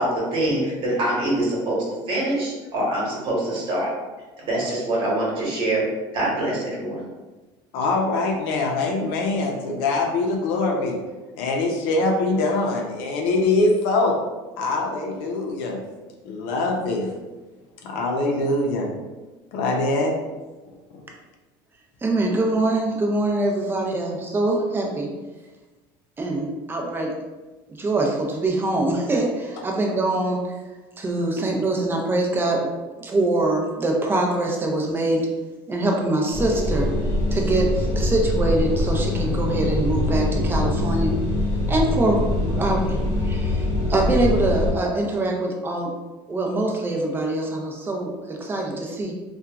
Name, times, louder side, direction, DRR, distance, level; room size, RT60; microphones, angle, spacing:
voice 1, 0.0-3.9 4.4-5.9 6.1-7.0, right 1 dB, 50° right, -4 dB, 1.1 m, -24 dB
voice 2, 7.7-10.9 11.4-14.2 14.6-15.8 16.2-17.1 17.8-18.9 19.5-20.1, left 2 dB, 80° left, 0 dB, 0.6 m, -23 dB
voice 3, 22.0-25.1 26.2-27.1 27.8-30.5 31.0-32.7 33.0-35.3 35.7-36.9 37.3-41.1 41.7-45.9 46.3-49.1, right 2 dB, 20° right, 0 dB, 0.5 m, -24 dB
sound 1, 36.3-44.7, left 1 dB, 25° left, 1.0 m, -23 dB
2.9 x 2.3 x 2.3 m, 1.2 s
supercardioid pair, 115°, 11 cm